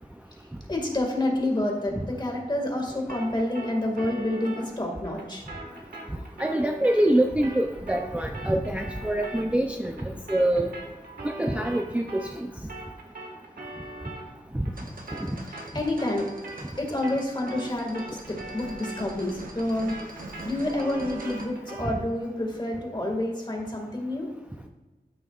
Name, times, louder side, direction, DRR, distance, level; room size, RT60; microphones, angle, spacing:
voice 1, 0.7-5.4 15.5-16.3 16.8-20.0 20.4-24.3, left 1 dB, 30° left, 0 dB, 2.0 m, -28 dB
sound 1, 3.1-12.4 12.7-22.0, right 2 dB, 85° right, 1.6 m, -41 dB
voice 2, 6.4-10.7 11.2-12.5 14.5-14.7, right 1 dB, 10° right, 3 dB, 0.5 m, -25 dB
sound 2, 14.7-21.5, right 2 dB, 65° right, 1.0 m, -44 dB
12.5 x 6.3 x 2.4 m, 1.1 s
wide cardioid pair, 90°, 16 cm